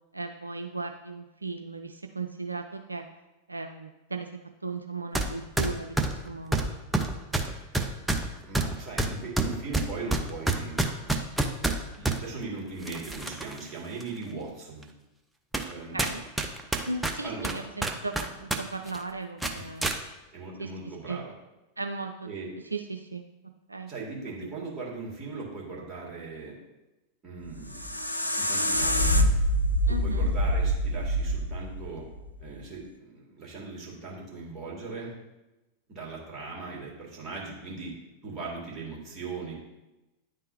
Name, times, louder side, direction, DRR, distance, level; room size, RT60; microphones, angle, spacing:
voice 1, 0.1-3.0 3.5-6.7 15.9-16.2 16.9-19.9 20.6-21.2 21.8-22.3 22.7-23.9 29.9-30.3, right 3 dB, 80° right, 5 dB, 0.3 m, -37 dB
sound 1, 5.1-5.3 5.6-12.2 12.8-13.6 14.0-14.1 14.8-14.9 15.5-15.7 16.0-18.6 18.9-19.0 19.4-20.0, right 2 dB, 5° right, 0.5 m, -28 dB
voice 2, 8.5-10.8 11.9-14.9 15.6-16.0 17.2-17.6 19.5-19.7 20.3-21.3 22.3-22.5 23.9-26.6 27.2-28.0 28.4-29.0 29.9-32.1 32.4-35.1 35.9-37.9 38.2-39.6, right 3 dB, 25° right, -4 dB, 2.1 m, -39 dB
sound 2, 27.4-32.5, equal, 85° left, 0.4 m, -26 dB
9.9 x 3.6 x 2.7 m, 1.0 s
figure-of-eight pair, 90°, 0 cm